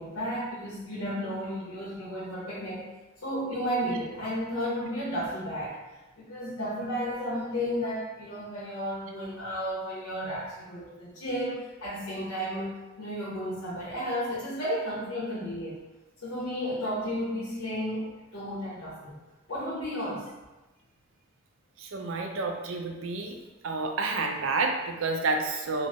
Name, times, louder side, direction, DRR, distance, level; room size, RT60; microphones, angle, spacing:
voice 1, 0.0-2.9 3.2-5.8 6.2-12.7 13.0-15.8 16.2-19.2 19.5-20.3, equal, 90° left, -9 dB, 1.0 m, -33 dB
voice 2, 21.8-23.3 23.6-25.9, right 3 dB, 70° right, 3 dB, 0.4 m, -29 dB
3.8 x 2.0 x 3.5 m, 1.1 s
head